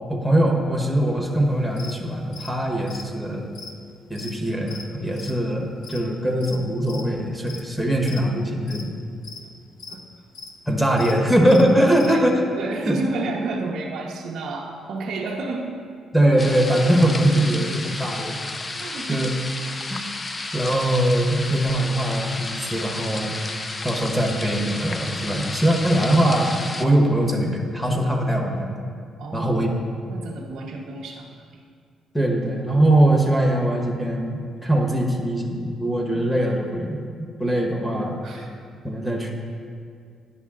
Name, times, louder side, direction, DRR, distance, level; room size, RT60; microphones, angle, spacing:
voice 1, 0.1-3.5 4.1-8.9 10.7-12.4 12.8-13.0 16.1-18.4 19.1-19.3 19.9-20.0 20.5-23.3 23.8-26.5 26.8-28.7 29.3-29.7 32.1-38.4 38.8-39.3, right 1 dB, 5° left, 1 dB, 1.1 m, -21 dB
sound 1, 1.4-1.5 1.8-2.0 2.2-6.6 6.8-7.2 7.5-7.8 8.0-8.4 8.7-9.5 9.8-10.0 10.3-10.5 11.0-11.1 11.4-12.2, left 4 dB, 85° left, 0.7 m, -40 dB
voice 2, 12.6-15.7 18.8-19.3 29.2-29.7 30.1-31.4 36.1-36.4 38.2-38.5, right 3 dB, 70° right, -2 dB, 0.7 m, -31 dB
sound 2, 16.4-26.9, left 2 dB, 30° left, 0.5 m, -32 dB
10.0 x 5.2 x 3.7 m, 2.2 s
cardioid pair, 90°, 0 cm